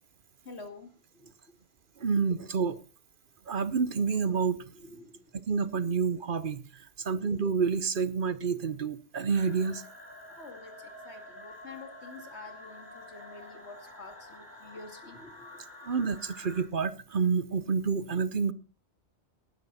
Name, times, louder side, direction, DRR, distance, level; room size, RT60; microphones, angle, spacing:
voice 1, 0.5-0.9 4.7-5.1 10.4-10.7 11.1-15.3, left 3 dB, 90° left, 6 dB, 2.6 m, -47 dB
voice 2, 2.0-2.8 3.5-4.6 5.4-6.6 7.0-9.8 15.9-18.5, right 5 dB, 55° right, 16 dB, 1.0 m, -28 dB
sound 1, 9.3-16.6, left 1 dB, 10° right, 4.5 m, -48 dB
18.5 x 10.5 x 4.1 m, 0.34 s
omnidirectional pair, 1.1 m